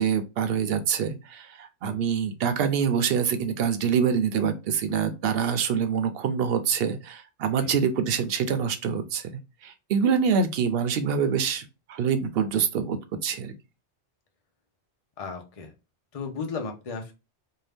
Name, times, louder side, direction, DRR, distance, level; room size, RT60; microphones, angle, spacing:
voice 1, 0.0-9.3 9.6-13.0 13.2-13.5, right 7 dB, 65° right, 0.7 m, -25 dB
voice 2, 15.2-15.7 16.1-17.1, left 4 dB, 40° left, 0.6 m, -34 dB
2.6 x 2.2 x 3.3 m
omnidirectional pair, 1.1 m